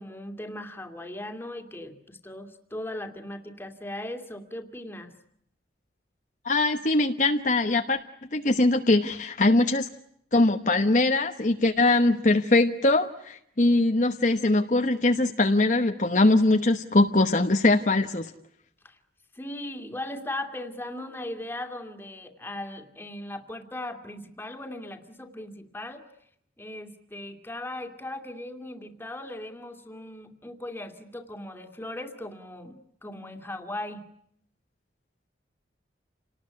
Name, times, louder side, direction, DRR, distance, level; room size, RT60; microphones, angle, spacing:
voice 1, 0.0-5.1 18.8-19.0 19.3-26.0 26.6-32.8 33.0-34.0, left 1 dB, 10° left, 5 dB, 2.4 m, -38 dB
voice 2, 6.4-8.0 8.3-9.9 10.3-18.3, left 2 dB, 45° left, 5 dB, 1.1 m, -22 dB
29.0 x 19.0 x 9.8 m, 0.73 s
head